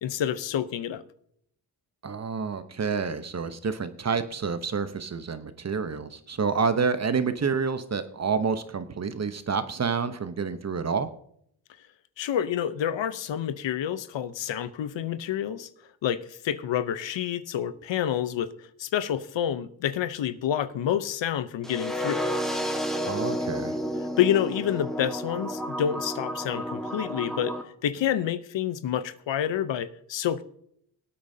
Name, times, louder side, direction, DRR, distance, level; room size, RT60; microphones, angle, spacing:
voice 1, 0.0-1.0 12.2-15.7 16.0-18.5 18.8-22.2 24.2-30.4, left 10 dB, 70° left, 0.8 m, -28 dB
voice 2, 2.0-11.1 23.0-23.8, right 5 dB, 35° right, 0.9 m, -28 dB
sound 1, 21.6-27.6, equal, ahead, 1.5 m, -31 dB
23.0 x 8.6 x 2.8 m
cardioid pair, 75°, 46 cm